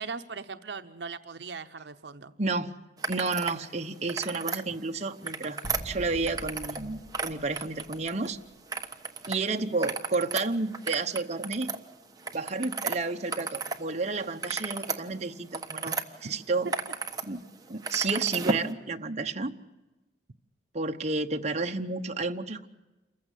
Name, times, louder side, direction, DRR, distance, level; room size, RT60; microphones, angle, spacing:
voice 1, 0.0-2.3 4.7-4.8, right 5 dB, 70° right, 8 dB, 0.8 m, -39 dB
voice 2, 2.4-2.7 3.1-8.4 9.3-11.7 12.3-16.7 17.2-17.4 17.7-19.5 20.7-22.7, right 3 dB, 40° right, 5 dB, 1.0 m, -31 dB
sound 1, 3.0-3.6 3.9-4.6 5.1-6.8 7.1-8.3 8.7-9.4 9.7-13.8 14.1-16.0 16.5-17.2 17.5-18.7, right 4 dB, 20° right, 1.3 m, -34 dB
sound 2, 5.6-8.6, equal, 85° left, 1.8 m, -44 dB
28.0 x 15.5 x 8.3 m, 1.1 s
head